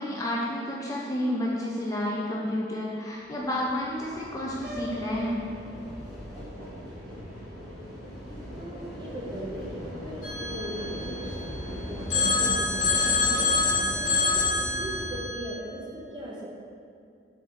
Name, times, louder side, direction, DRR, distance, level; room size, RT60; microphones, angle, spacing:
voice 1, 0.0-5.4, left 1 dB, 20° left, -4 dB, 0.3 m, -30 dB
sound 1, 3.3-15.2, equal, ahead, 1.2 m, -38 dB
Piano, 4.6-6.5, left 2 dB, 70° right, 0.7 m, -41 dB
voice 2, 6.4-6.8 7.2-8.1 8.6-11.4 11.7-13.5 13.9-16.5, right 1 dB, 25° right, -3 dB, 0.6 m, -39 dB
Telephone, 10.2-11.6 12.1-15.5, left 4 dB, 60° left, 0.8 m, -26 dB
4.5 x 4.1 x 2.4 m, 2.4 s
head